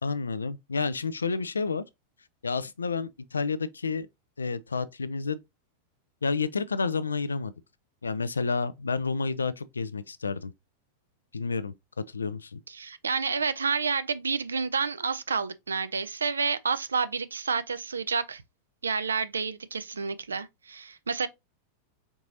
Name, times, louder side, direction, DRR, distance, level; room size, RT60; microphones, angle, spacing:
voice 1, 0.0-1.8 2.4-4.1 4.4-5.4 6.2-7.5 8.0-10.5 11.3-11.7 12.1-12.6, left 4 dB, 75° left, 0.4 m, -30 dB
voice 2, 12.7-18.4 18.8-21.3, right 5 dB, 75° right, 0.4 m, -29 dB
4.6 x 3.9 x 2.7 m
figure-of-eight pair, 90°, 0 cm